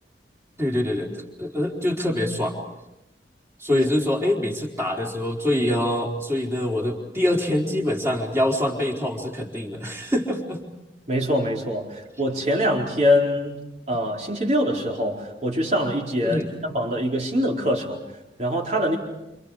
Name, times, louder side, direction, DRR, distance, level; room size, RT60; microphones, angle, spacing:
voice 1, 0.6-1.1 1.4-2.6 3.6-10.6 13.9-14.0 16.2-16.5, left 1 dB, 15° right, -1 dB, 4.2 m, -24 dB
voice 2, 11.1-18.0 18.4-19.0, equal, 40° right, -1 dB, 4.4 m, -24 dB
29.0 x 28.5 x 5.0 m, 0.93 s
head